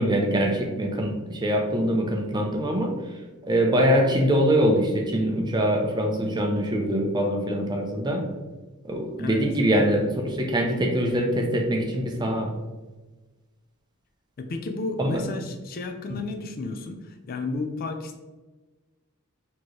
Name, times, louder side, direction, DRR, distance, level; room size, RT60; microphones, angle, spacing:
voice 1, 0.0-2.9 3.4-8.2 8.9-12.5 15.0-15.2 16.1-16.2, equal, 20° right, 2 dB, 0.6 m, -23 dB
voice 2, 14.4-18.2, left 3 dB, 40° left, 6 dB, 0.4 m, -32 dB
4.3 x 2.9 x 3.1 m, 1.2 s
head